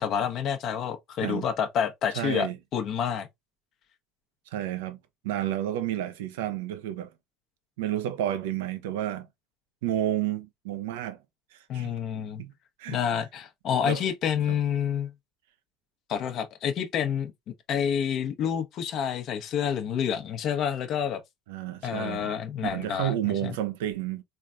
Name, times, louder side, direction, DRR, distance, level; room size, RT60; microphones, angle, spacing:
voice 1, 0.0-3.3 11.7-12.4 12.9-15.1 16.1-21.2 21.8-23.1 23.4-23.5, left 8 dB, 50° left, 0.9 m, -28 dB
voice 2, 2.1-2.6 4.5-5.0 5.2-7.1 7.8-9.3 9.8-11.2 11.5-11.9 12.4-12.5 12.8-13.0 13.8-14.0 14.5-14.6 21.5-22.3 22.6-24.2, right 12 dB, 70° right, 0.6 m, -31 dB
4.2 x 3.3 x 2.4 m
figure-of-eight pair, 60°, 0 cm